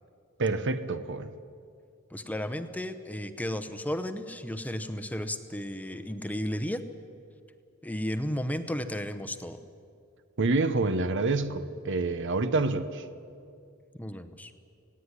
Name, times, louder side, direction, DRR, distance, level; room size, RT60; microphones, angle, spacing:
voice 1, 0.4-1.3 10.4-13.0, right 3 dB, 60° right, 12 dB, 0.9 m, -27 dB
voice 2, 2.1-6.8 7.8-9.6 14.0-14.5, equal, 5° left, 10 dB, 0.8 m, -33 dB
18.0 x 17.0 x 9.8 m, 2.4 s
head